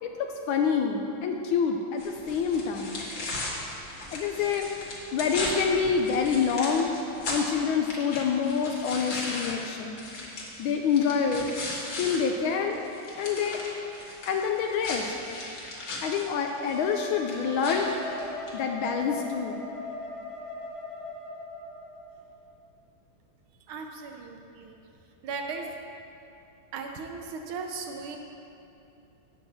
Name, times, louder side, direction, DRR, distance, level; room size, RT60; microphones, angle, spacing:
voice 1, 0.0-3.1 4.1-4.7 5.1-6.9 7.3-10.0 10.3-11.5 12.0-12.8 13.2-13.6 14.3-15.1 16.0-17.9 18.5-19.6, left 6 dB, 80° left, 3 dB, 1.3 m, -27 dB
sound 1, 2.0-12.2 12.5-18.6, left 2 dB, 65° left, 2.1 m, -37 dB
Wind instrument woodwind instrument, 16.6-22.1, left 1 dB, 20° right, 0.9 m, -39 dB
voice 2, 23.7-24.8 25.2-25.7 26.7-28.2, right 4 dB, 85° right, 3 dB, 1.5 m, -37 dB
8.8 x 4.4 x 7.2 m, 2.8 s
omnidirectional pair, 2.3 m